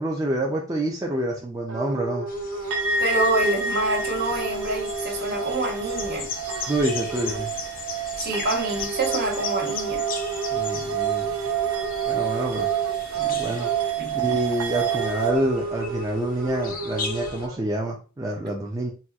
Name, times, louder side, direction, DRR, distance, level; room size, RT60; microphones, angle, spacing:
voice 1, 0.0-2.3 6.7-7.5 10.5-11.3 12.0-12.7 13.2-13.7 14.1-18.9, right 1 dB, 15° right, 0.4 m, -27 dB
sound 1, 1.7-6.8 7.1-7.4 8.6-14.0 14.9-17.6, right 2 dB, 90° right, 0.9 m, -33 dB
sound 2, 2.3-17.5, left 5 dB, 45° left, 0.5 m, -38 dB
sound 3, 2.7-15.3, right 7 dB, 75° right, 0.5 m, -29 dB
voice 2, 3.0-6.3 8.2-10.0 14.0-14.1, right 2 dB, 50° right, 0.9 m, -26 dB
4.1 x 2.3 x 2.3 m
head